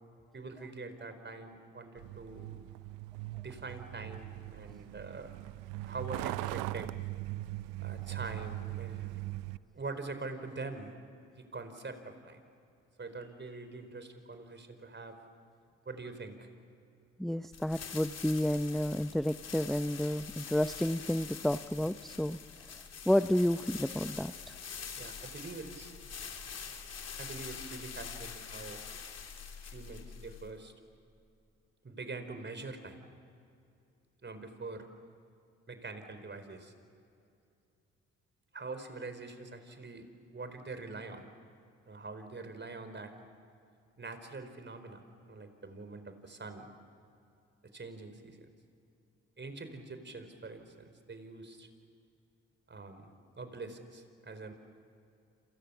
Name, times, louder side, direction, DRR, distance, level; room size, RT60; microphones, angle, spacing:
voice 1, 0.3-2.5 3.4-5.3 5.8-7.0 7.8-9.1 9.7-10.9 11.4-12.4 13.0-15.2 15.8-16.5 25.0-25.9 27.2-28.8 29.6-30.7 31.8-33.0 34.2-34.9 35.7-36.7 38.5-40.1 40.3-41.3 41.9-43.1 44.0-46.7 47.7-48.5 49.4-51.7 52.7-53.1 53.4-54.5, right 3 dB, 35° right, 9 dB, 4.9 m, -44 dB
Truck, 2.0-9.6, right 19 dB, 80° right, 0.6 m, -40 dB
voice 2, 17.2-22.4 23.1-24.5, left 1 dB, ahead, 11 dB, 0.7 m, -30 dB
sound 1, 17.5-30.7, left 6 dB, 55° left, 3.3 m, -45 dB
29.0 x 28.0 x 7.2 m, 2.5 s
hypercardioid pair, 50°, 31 cm